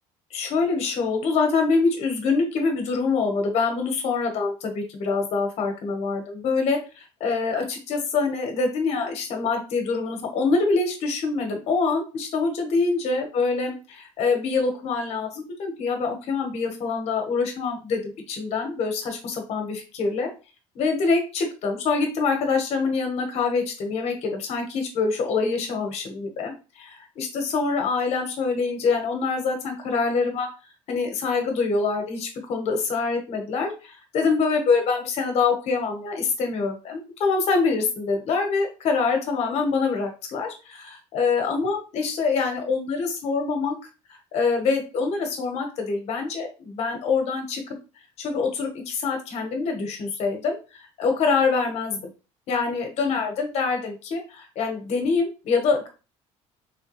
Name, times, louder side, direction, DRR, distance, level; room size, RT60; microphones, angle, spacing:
voice 1, 0.3-20.3 20.7-30.5 30.9-43.8 44.3-47.6 48.2-50.6 51.0-52.0 52.5-55.9, left 4 dB, 55° left, 3 dB, 0.9 m, -25 dB
3.3 x 2.2 x 3.0 m, 0.32 s
cardioid pair, 150°, 13 cm